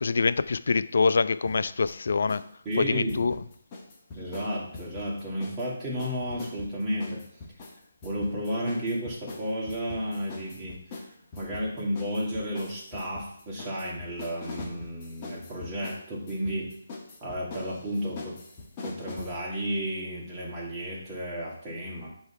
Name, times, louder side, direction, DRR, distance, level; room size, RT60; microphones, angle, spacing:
voice 1, 0.0-2.4 2.8-3.3, left 4 dB, 65° left, 15 dB, 0.4 m, -25 dB
sound 1, 1.5-2.5 2.7-5.7 6.0-19.4, left 3 dB, 25° left, 1.3 m, -43 dB
voice 2, 2.6-3.3 4.1-7.2 8.0-11.0 11.4-16.7 17.2-18.4 18.8-22.1, equal, 15° right, -6 dB, 2.3 m, -32 dB
7.9 x 3.2 x 5.7 m, 0.70 s
figure-of-eight pair, 155°, 0 cm